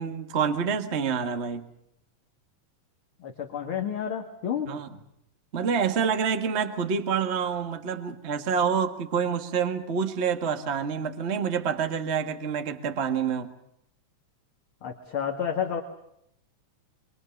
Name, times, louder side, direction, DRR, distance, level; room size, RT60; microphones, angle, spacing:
voice 1, 0.0-1.6 4.7-4.9 5.5-13.6, right 6 dB, 30° right, 7 dB, 1.3 m, -27 dB
voice 2, 3.2-4.7 14.8-15.8, left 8 dB, 45° left, 3 dB, 2.4 m, -30 dB
24.5 x 24.0 x 7.2 m, 0.77 s
omnidirectional pair, 3.7 m